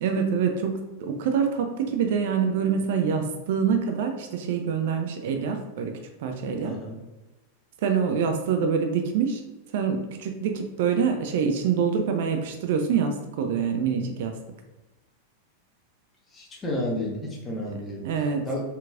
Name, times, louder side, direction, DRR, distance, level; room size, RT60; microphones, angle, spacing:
voice 1, 0.0-6.8 7.8-9.4 9.7-14.4 18.0-18.5, right 6 dB, 50° right, 5 dB, 0.4 m, -25 dB
voice 2, 6.6-7.0 16.3-18.1 18.4-18.6, left 1 dB, 20° left, -2 dB, 1.1 m, -31 dB
4.2 x 3.9 x 2.4 m, 1.1 s
figure-of-eight pair, 90°, 0 cm